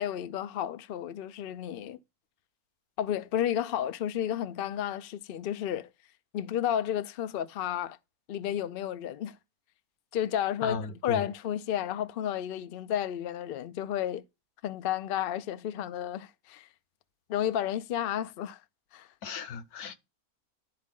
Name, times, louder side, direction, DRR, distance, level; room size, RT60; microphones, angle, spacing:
voice 1, 0.0-2.0 3.0-5.9 6.3-8.0 8.3-9.3 10.1-14.2 14.6-16.7 17.3-18.6 18.9-19.1, left 10 dB, 65° left, 0.6 m, -32 dB
voice 2, 10.6-11.2 19.2-19.9, left 5 dB, 90° left, 1.4 m, -36 dB
11.5 x 4.1 x 3.6 m
omnidirectional pair, 1.5 m